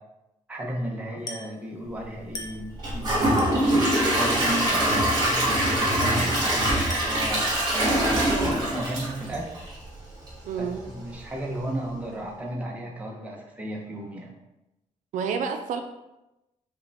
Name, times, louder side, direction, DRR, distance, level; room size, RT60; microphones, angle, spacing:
voice 1, 0.5-3.9 4.2-9.4 10.6-14.3, right 1 dB, 10° right, -2 dB, 0.6 m, -34 dB
Glass, 1.3-1.6 2.3-2.7 3.4-3.7 4.3-4.7 5.2-5.6 6.0-6.3 6.9-7.3, left 2 dB, 30° left, 0.5 m, -40 dB
Gurgling / Toilet flush / Trickle dribble, 2.8-9.8 10.3-10.4 10.8-10.9, right 1 dB, 35° right, 1.4 m, -23 dB
voice 2, 8.2-8.6 10.4-10.8 15.1-15.8, right 6 dB, 80° right, 6 dB, 0.4 m, -30 dB
4.8 x 2.2 x 3.3 m, 0.94 s
cardioid pair, 165°, 13 cm